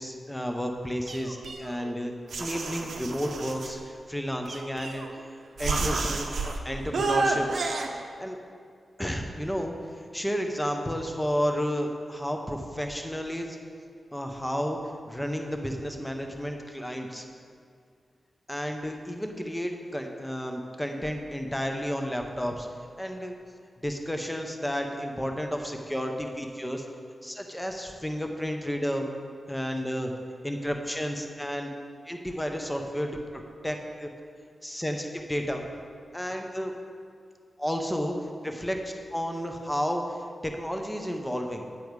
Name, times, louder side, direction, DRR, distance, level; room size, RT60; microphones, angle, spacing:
voice 1, 0.0-2.1 2.4-7.7 8.2-8.4 9.0-9.7 10.1-13.6 14.1-14.8 15.1-17.2 18.5-22.7 23.0-23.3 23.8-26.8 27.2-29.1 29.5-30.1 30.4-31.7 32.1-33.1 33.6-34.1 34.6-35.6 36.1-36.7 37.6-38.1 38.4-38.8 39.1-40.0 40.4-41.6, equal, 5° left, 3 dB, 0.7 m, -32 dB
sound 1, 1.1-1.9 2.3-3.7 4.5-5.2 5.6-6.6 6.9-7.9, right 3 dB, 75° right, 0.8 m, -30 dB
9.3 x 7.0 x 4.7 m, 2.2 s
wide cardioid pair, 125°, 0 cm